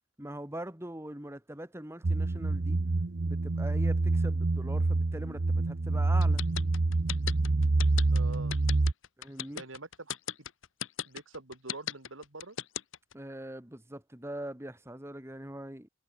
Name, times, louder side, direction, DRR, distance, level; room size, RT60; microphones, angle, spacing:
voice 1, 0.2-2.8 3.2-6.4 9.2-9.6 13.1-15.9, right 1 dB, 15° right, 2.1 m, -42 dB
sound 1, 2.0-8.9, right 2 dB, 65° right, 0.8 m, -27 dB
sound 2, 6.2-13.1, left 10 dB, 80° left, 1.0 m, -36 dB
voice 2, 8.1-8.6 9.5-10.2 11.1-12.6, right 2 dB, 90° right, 3.4 m, -45 dB
head